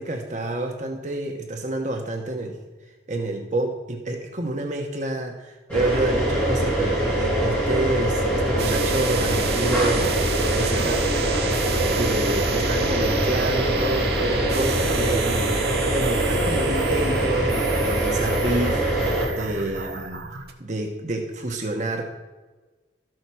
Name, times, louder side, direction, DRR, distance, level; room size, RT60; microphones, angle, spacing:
voice 1, 0.0-2.6 3.1-10.1 10.6-11.0 11.3-11.5 11.9-20.2 20.6-22.0, right 2 dB, 40° right, 3 dB, 1.1 m, -28 dB
sound 1, 5.7-19.3, right 1 dB, 10° left, 4.2 m, -23 dB
sound 2, 8.6-20.5, right 4 dB, 60° right, 1.5 m, -30 dB
13.0 x 7.6 x 6.2 m, 1.3 s
head